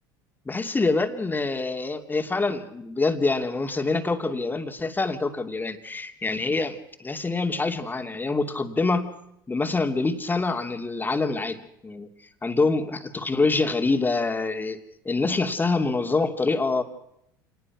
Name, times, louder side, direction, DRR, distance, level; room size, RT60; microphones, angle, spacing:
voice 1, 0.5-9.1 9.5-12.1 12.4-14.8 15.0-16.8, left 3 dB, 15° left, 6 dB, 2.7 m, -25 dB
27.0 x 20.0 x 6.1 m, 0.77 s
hypercardioid pair, 80°, 11 cm